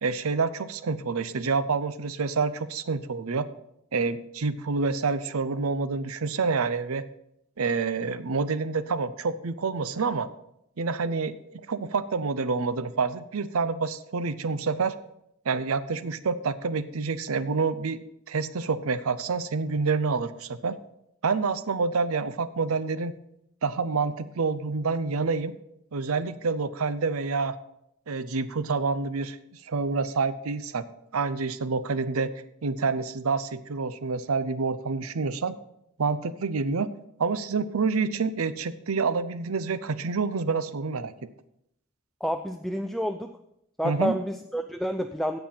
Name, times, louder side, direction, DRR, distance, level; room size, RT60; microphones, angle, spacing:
voice 1, 0.0-3.5 3.9-7.0 7.6-10.3 10.8-15.0 15.5-18.0 18.3-20.8 21.2-23.1 23.6-25.6 25.9-27.6 28.1-29.4 29.7-30.9 31.1-32.3 32.6-35.6 36.0-36.9 37.2-41.1 43.8-44.2, right 4 dB, 85° right, 14 dB, 0.6 m, -28 dB
voice 2, 42.2-43.3 43.8-45.4, equal, ahead, 6 dB, 0.3 m, -29 dB
16.0 x 5.5 x 4.4 m, 0.78 s
head